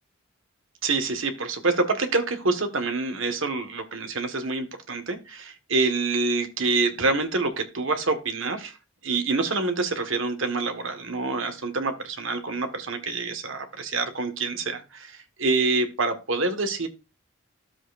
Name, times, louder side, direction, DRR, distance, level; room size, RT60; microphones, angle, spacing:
voice 1, 0.8-8.8 9.0-16.9, right 3 dB, 75° right, 7 dB, 1.5 m, -26 dB
13.0 x 7.5 x 2.5 m, 0.29 s
head